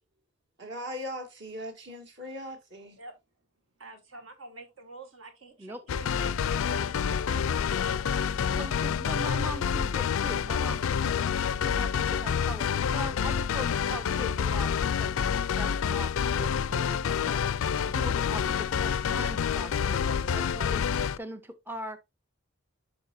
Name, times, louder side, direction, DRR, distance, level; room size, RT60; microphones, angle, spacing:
voice 1, 0.6-3.0, equal, 55° right, 2.2 m, -40 dB
voice 2, 3.8-8.1, right 2 dB, 75° right, 2.0 m, -47 dB
sound 1, 5.9-21.2, left 7 dB, 80° left, 0.4 m, -28 dB
voice 3, 8.5-11.3 11.6-15.1 15.5-17.5 17.8-22.1, right 1 dB, 10° right, 0.5 m, -41 dB
11.0 x 5.1 x 2.6 m
head